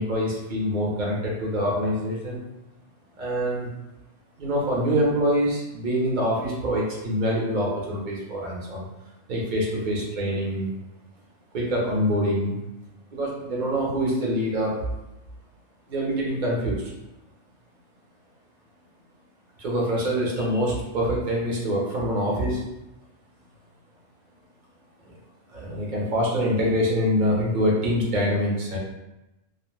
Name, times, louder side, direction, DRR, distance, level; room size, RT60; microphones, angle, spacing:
voice 1, 0.0-2.4 3.2-3.7 4.4-8.8 9.3-10.7 11.5-12.6 13.1-14.8 15.9-16.8 19.6-22.6 25.5-28.8, equal, 45° right, -4 dB, 0.7 m, -25 dB
2.4 x 2.1 x 3.1 m, 0.95 s
omnidirectional pair, 1.3 m